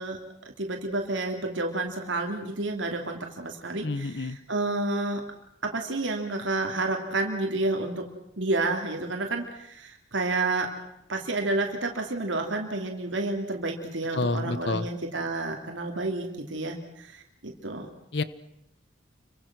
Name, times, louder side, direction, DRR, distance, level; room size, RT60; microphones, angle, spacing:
voice 1, 0.0-5.2 5.6-8.1 8.4-10.7 11.1-17.9, right 2 dB, 90° right, 2 dB, 3.1 m, -30 dB
voice 2, 3.7-4.4 14.1-14.9 18.1-18.2, left 2 dB, 65° left, 15 dB, 1.0 m, -29 dB
29.5 x 24.5 x 6.2 m, 0.83 s
head